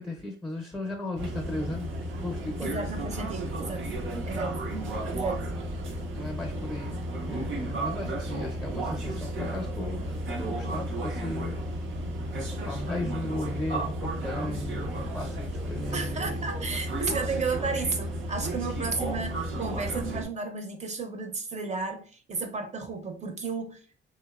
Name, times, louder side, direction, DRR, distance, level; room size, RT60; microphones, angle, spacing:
voice 1, 0.0-1.9 2.2-2.8 4.9-5.2 6.1-10.1 10.4-12.0 12.5-16.5, left 1 dB, 10° left, 0.6 m, -36 dB
sound 1, 1.2-20.3, right 1 dB, 80° right, 0.6 m, -33 dB
voice 2, 2.6-3.9 4.3-4.8 5.1-5.4 15.9-24.0, right 4 dB, 35° right, 0.6 m, -33 dB
2.8 x 2.0 x 2.3 m
cardioid pair, 90°, 20 cm